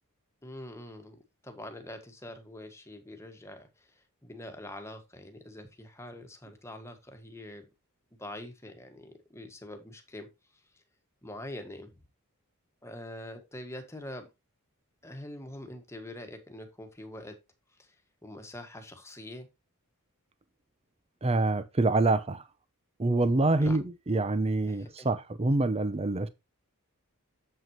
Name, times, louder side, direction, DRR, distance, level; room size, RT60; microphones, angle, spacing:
voice 1, 0.4-7.7 8.2-10.3 11.2-11.9 12.8-14.3 15.0-17.3 17.8-17.9 18.2-19.5 23.6-23.8 24.7-25.2, left 1 dB, 10° left, 1.6 m, -44 dB
voice 2, 21.2-22.4 23.0-26.3, right 2 dB, 25° right, 0.6 m, -26 dB
7.7 x 7.7 x 3.0 m
head